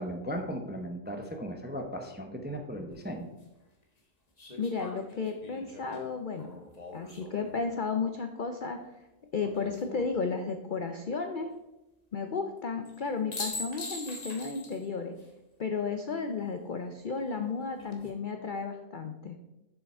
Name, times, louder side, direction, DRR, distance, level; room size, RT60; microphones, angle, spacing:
voice 1, 0.0-3.3, equal, 15° right, 4 dB, 0.4 m, -37 dB
sound 1, 2.9-3.0 4.4-7.6 9.4-10.1 12.9-13.0 13.3-14.9 15.2-15.3 17.6-18.1, left 2 dB, 30° left, 1.1 m, -42 dB
voice 2, 4.6-6.5 6.9-8.8 9.3-11.5 12.1-15.1 15.6-19.4, left 4 dB, 75° left, 6 dB, 0.4 m, -33 dB
7.0 x 6.8 x 4.3 m, 0.96 s
omnidirectional pair, 1.7 m